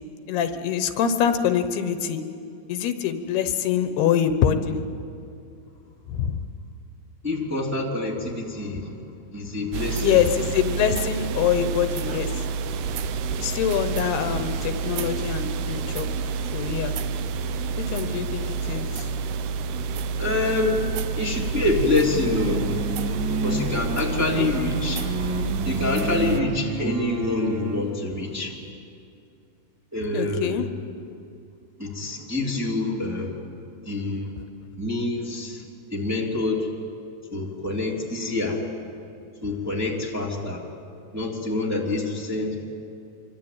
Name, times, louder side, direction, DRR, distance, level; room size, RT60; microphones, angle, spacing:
voice 1, 0.3-2.2 2.7-4.8 6.1-6.4 10.0-12.3 13.4-16.1 16.5-16.9 17.8-19.1 24.3-24.5 30.1-30.7, left 9 dB, 80° left, 8 dB, 3.0 m, -24 dB
voice 2, 7.2-9.0 9.3-10.2 20.2-22.8 23.4-25.0 25.6-28.5 29.9-30.7 31.8-33.4 33.8-34.3 34.7-35.6 35.9-36.7 37.3-38.7 39.4-40.7 41.1-42.6, left 2 dB, 5° right, -3 dB, 2.4 m, -26 dB
sound 1, 9.7-26.4, right 5 dB, 80° right, 2.9 m, -29 dB
sound 2, 22.1-27.9, right 2 dB, 45° right, 1.7 m, -30 dB
26.5 x 24.0 x 8.9 m, 2.5 s
omnidirectional pair, 4.7 m